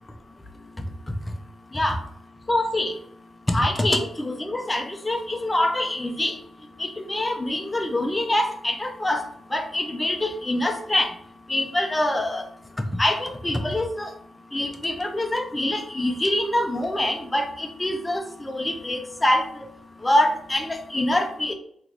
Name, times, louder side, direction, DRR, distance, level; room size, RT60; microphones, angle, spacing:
voice 1, 2.5-2.9 3.5-6.4 6.8-11.1 11.5-12.5 13.0-14.1 14.5-19.7 20.0-21.5, left 1 dB, 20° left, 5 dB, 0.7 m, -25 dB
3.6 x 2.6 x 3.0 m, 0.66 s
cardioid pair, 65°, 0 cm